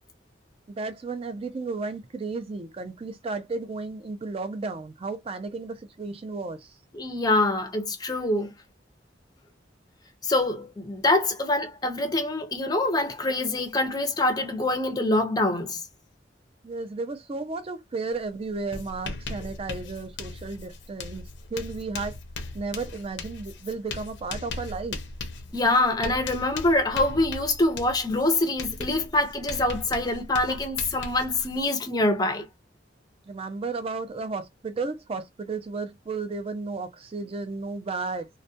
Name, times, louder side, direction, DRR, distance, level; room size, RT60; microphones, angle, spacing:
voice 1, 0.7-6.7 16.6-21.2 21.5-22.2 22.5-25.0 33.3-38.3, right 3 dB, 35° right, 0.4 m, -33 dB
voice 2, 6.9-8.5 10.2-15.8 25.5-32.4, left 2 dB, 20° left, 0.5 m, -25 dB
Writing, 18.1-18.3 18.5-31.7, left 3 dB, 80° left, 0.6 m, -38 dB
2.2 x 2.1 x 2.6 m
head